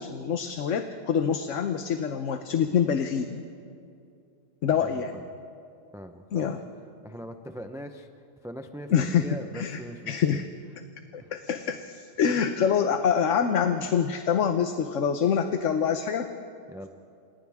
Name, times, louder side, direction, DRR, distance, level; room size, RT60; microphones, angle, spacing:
voice 1, 0.0-3.4 4.6-5.1 6.3-6.6 8.9-9.8 10.1-10.5 11.1-16.3, left 7 dB, 70° left, 7 dB, 1.2 m, -26 dB
voice 2, 4.7-5.3 5.9-6.5 7.0-8.1 8.4-10.4 11.2-11.3 16.7-16.9, equal, 5° right, 6 dB, 0.6 m, -41 dB
29.0 x 27.5 x 3.6 m, 2.5 s
omnidirectional pair, 1.4 m